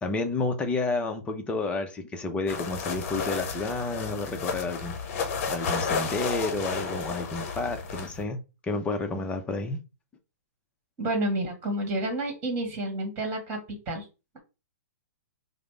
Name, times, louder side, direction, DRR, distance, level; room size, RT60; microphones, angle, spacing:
voice 1, 0.0-5.0 5.5-8.4 8.6-9.8, left 3 dB, 10° left, 0.6 m, -30 dB
sound 1, 2.5-8.2, left 5 dB, 50° left, 0.8 m, -32 dB
voice 2, 11.0-14.1, right 1 dB, 25° right, 1.5 m, -30 dB
5.0 x 2.0 x 3.3 m
hypercardioid pair, 140°, 9 cm